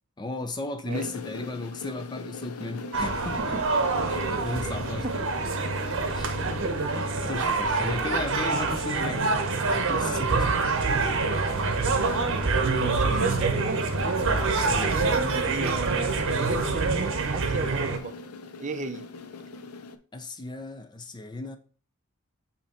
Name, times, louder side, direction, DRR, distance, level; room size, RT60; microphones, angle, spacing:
voice 1, 0.2-3.6 4.1-5.3 5.8-6.3 7.2-9.3 9.7-10.6 14.7-15.0 20.1-21.6, left 2 dB, 20° left, 0.4 m, -35 dB
sound 1, 0.9-20.0, left 4 dB, 80° left, 0.6 m, -42 dB
sound 2, 2.9-18.0, right 3 dB, 60° right, 0.9 m, -26 dB
voice 2, 12.6-13.8 15.1-18.2 18.6-19.0, right 3 dB, 35° right, 0.5 m, -34 dB
8.1 x 2.9 x 4.3 m
head